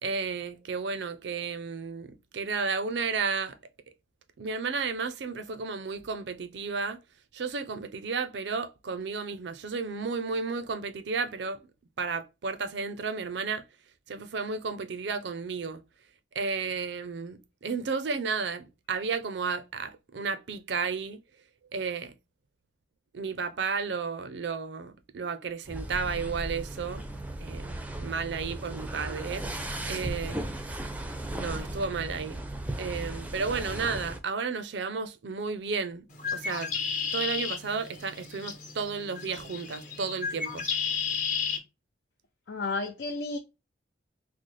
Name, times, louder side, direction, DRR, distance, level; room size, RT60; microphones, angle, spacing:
voice 1, 0.0-3.6 4.4-7.0 7.3-11.7 12.0-13.6 14.1-15.8 16.3-21.2 21.7-22.1 23.1-27.1 27.4-29.5 29.9-30.4 31.4-32.4 32.8-36.1 36.3-36.7 37.1-40.7, right 5 dB, 75° right, 0.5 m, -33 dB
sound 1, 25.6-34.2, right 1 dB, 10° right, 0.4 m, -36 dB
Bird, 36.1-41.6, left 6 dB, 45° left, 1.0 m, -33 dB
voice 2, 42.5-43.4, left 3 dB, 75° left, 0.5 m, -32 dB
4.0 x 2.1 x 3.0 m
head